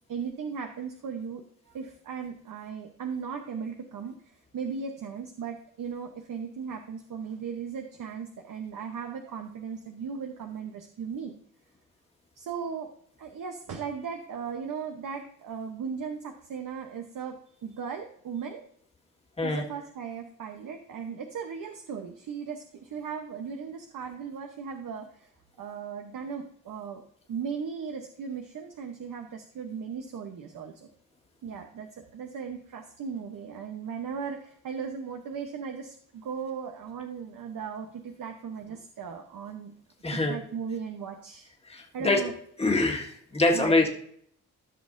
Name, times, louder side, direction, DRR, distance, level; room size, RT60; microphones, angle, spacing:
voice 1, 0.1-4.2 4.5-11.3 12.4-12.9 13.2-18.6 19.4-25.3 25.6-27.0 27.3-30.9 31.4-39.7 40.1-41.5 41.9-42.3 43.5-43.8, right 6 dB, 75° right, 4 dB, 0.9 m, -37 dB
voice 2, 40.0-40.3 41.6-42.2 42.6-43.9, left 2 dB, 20° left, 0 dB, 1.6 m, -24 dB
14.0 x 6.3 x 2.6 m, 0.64 s
wide cardioid pair, 120°, 32 cm